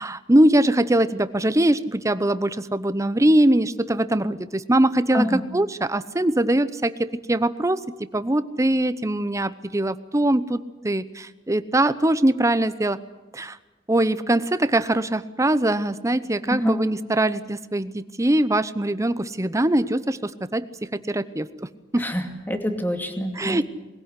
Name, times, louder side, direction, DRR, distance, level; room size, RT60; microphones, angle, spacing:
voice 1, 0.0-7.8 8.1-13.0 13.3-13.6 13.9-20.7 20.9-21.5 21.9-22.1 23.4-23.6, right 1 dB, 15° right, 14 dB, 0.8 m, -22 dB
voice 2, 16.5-16.8 22.0-23.6, equal, 10° left, 5 dB, 2.4 m, -26 dB
22.0 x 16.5 x 9.8 m, 1.1 s
head